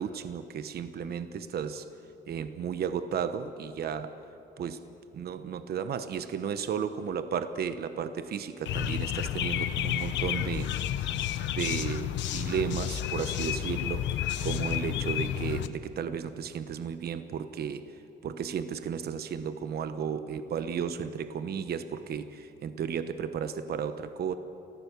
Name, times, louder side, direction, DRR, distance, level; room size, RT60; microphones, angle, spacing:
voice 1, 0.0-1.9 2.3-4.1 4.6-4.8 5.1-10.7 11.1-11.2 11.5-17.8 18.2-24.3, right 7 dB, 60° right, 10 dB, 1.0 m, -34 dB
sound 1, 8.7-15.7, left 11 dB, 80° left, 0.9 m, -31 dB
29.5 x 15.0 x 6.9 m, 2.8 s
cardioid pair, 105°, 19 cm